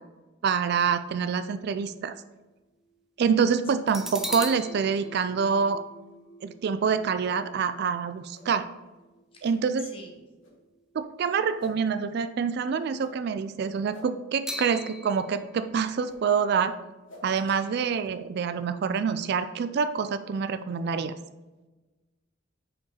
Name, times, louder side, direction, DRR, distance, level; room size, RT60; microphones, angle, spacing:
voice 1, 0.4-2.1 3.2-5.8 6.4-8.7 9.4-9.9 10.9-16.7 17.2-21.1, right 6 dB, 55° right, 12 dB, 0.3 m, -26 dB
sound 1, 0.9-2.4 2.9-3.0 3.9-11.3 11.6-11.8 14.5-18.2 18.6-18.7, equal, ahead, 0.6 m, -42 dB
sound 2, 7.2-7.3 8.3-8.5 9.4-9.6 10.4-10.5 11.6-11.7 12.9-13.1 13.9-14.1 15.1-15.2 16.1-16.2 17.1-17.2, left 1 dB, 75° left, 1.5 m, -48 dB
voice 2, 9.3-10.2 17.4-17.8, left 3 dB, 30° left, 1 dB, 1.3 m, -47 dB
5.4 x 4.6 x 4.9 m, 1.2 s
head